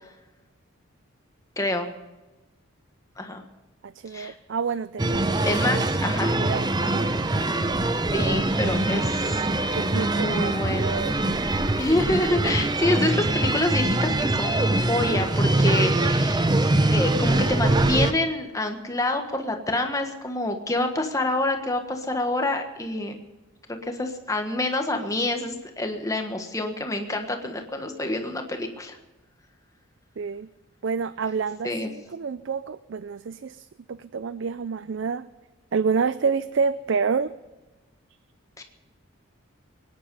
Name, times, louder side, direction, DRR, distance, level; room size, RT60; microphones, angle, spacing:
voice 1, 1.6-1.9 3.2-3.4 4.1-4.3 5.4-6.4 8.1-9.4 9.9-11.1 11.8-16.5 16.9-23.2 23.8-29.0 31.6-31.9 38.6-38.7, left 1 dB, 15° left, 5 dB, 1.4 m, -27 dB
voice 2, 3.8-5.3 6.4-7.2 8.2-9.0 9.7-11.2 30.2-30.5 30.8-35.2 35.7-37.3, right 5 dB, 60° right, 15 dB, 0.4 m, -28 dB
sound 1, 5.0-18.1, right 2 dB, 20° right, 0.7 m, -23 dB
23.0 x 10.5 x 5.4 m, 1.1 s
head